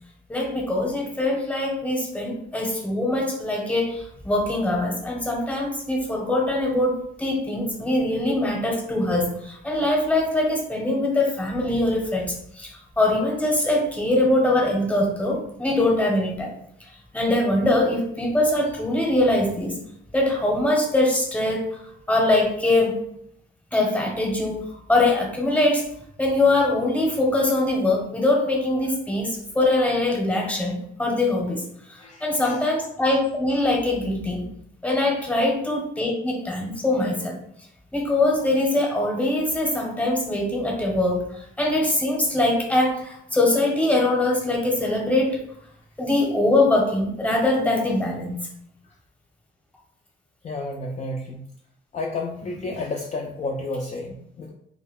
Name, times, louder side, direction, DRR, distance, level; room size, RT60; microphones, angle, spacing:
voice 1, 0.3-16.5 17.1-19.7 20.1-21.6 22.1-23.1 23.7-24.6 24.9-25.9 26.2-31.6 32.2-34.5 34.8-37.4 37.9-41.2 41.6-45.4 46.0-48.4, left 2 dB, 5° left, 0 dB, 0.9 m, -22 dB
voice 2, 32.0-32.6 35.3-35.5 50.4-51.4 51.9-54.5, left 2 dB, 35° left, 0 dB, 0.4 m, -31 dB
2.2 x 2.1 x 3.5 m, 0.70 s
cardioid pair, 90°, 20 cm